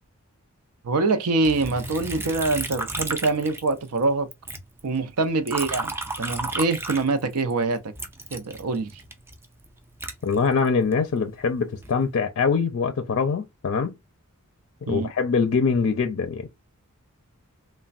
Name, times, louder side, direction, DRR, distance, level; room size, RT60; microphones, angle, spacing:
voice 1, 0.8-4.3 4.8-7.9 8.3-9.0 14.9-15.1, right 3 dB, 80° right, 0.6 m, -25 dB
Liquid, 1.4-4.0 4.3-7.5 7.9-11.0 11.5-12.1, right 2 dB, 10° right, 0.4 m, -33 dB
voice 2, 10.2-14.0 14.8-16.5, left 5 dB, 60° left, 0.4 m, -23 dB
3.2 x 2.2 x 2.4 m
head